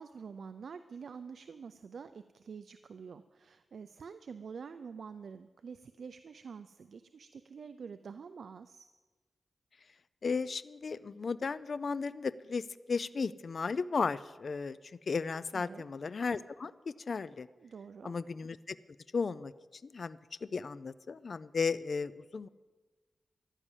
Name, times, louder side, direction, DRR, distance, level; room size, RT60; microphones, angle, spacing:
voice 1, 0.0-8.9 15.5-15.8 17.6-18.1, right 6 dB, 80° right, 11 dB, 0.5 m, -47 dB
voice 2, 10.2-14.8 15.1-17.5 18.0-18.8 19.1-19.5 19.8-22.5, left 5 dB, 60° left, 16 dB, 0.5 m, -35 dB
14.5 x 11.5 x 7.3 m, 1.3 s
wide cardioid pair, 80°, 0 cm